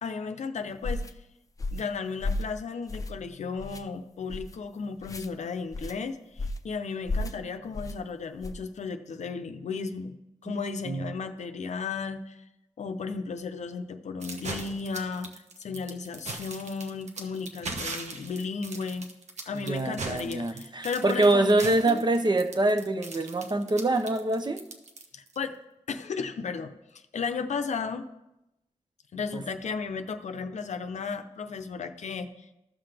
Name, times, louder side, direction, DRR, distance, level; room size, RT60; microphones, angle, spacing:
voice 1, 0.0-1.0 1.7-10.2 10.4-12.4 12.8-15.3 15.6-19.1 19.5-22.0 25.1-25.6 25.9-28.0 29.1-32.5, left 5 dB, 70° left, 8 dB, 0.6 m, -34 dB
sound 1, 0.8-1.1 1.6-1.9 2.2-2.5 2.9-3.3 3.6-3.8 4.3-4.6 5.0-5.3 5.7-6.0 6.4-6.7 7.1-7.4 7.7-8.0 8.4-8.7, left 2 dB, 30° left, 0.6 m, -33 dB
voice 2, 10.5-11.1 19.5-24.6 29.3-29.4, right 2 dB, 35° right, 8 dB, 0.8 m, -25 dB
sound 2, 14.2-25.4, right 3 dB, 70° right, 1.0 m, -39 dB
14.0 x 5.8 x 3.4 m, 0.91 s
cardioid pair, 70°, 12 cm